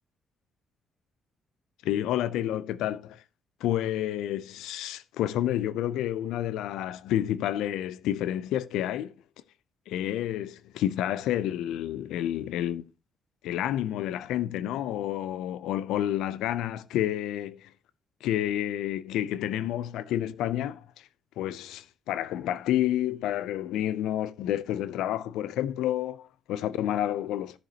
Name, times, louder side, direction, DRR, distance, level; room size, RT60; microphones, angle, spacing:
voice 1, 1.8-3.2 3.6-9.1 9.9-12.9 13.4-17.7 18.2-21.1 21.4-27.6, left 12 dB, 90° left, 0.4 m, -29 dB
12.5 x 6.8 x 2.8 m
cardioid pair, 90°, 0 cm